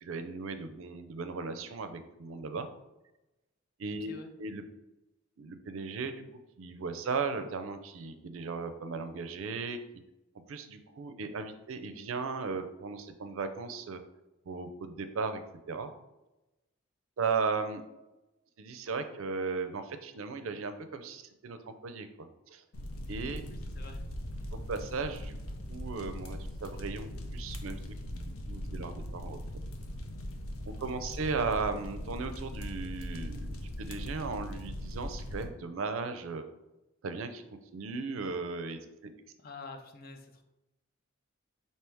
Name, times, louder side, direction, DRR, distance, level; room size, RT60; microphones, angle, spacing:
voice 1, 0.0-2.7 3.8-4.1 4.4-4.6 5.4-6.2 6.6-9.8 10.5-14.0 14.5-15.4 15.7-15.9 17.2-17.8 18.6-22.6 23.1-23.4 24.7-25.3 25.7-27.8 28.1-29.4 30.7-36.4 37.0-37.4 37.7-39.1, right 4 dB, 70° right, 9 dB, 0.4 m, -36 dB
sound 1, 22.7-35.5, left 1 dB, 90° left, 0.6 m, -40 dB
voice 2, 23.5-24.0 39.4-40.4, left 3 dB, 45° left, 5 dB, 0.5 m, -47 dB
3.4 x 2.8 x 4.5 m, 0.98 s
head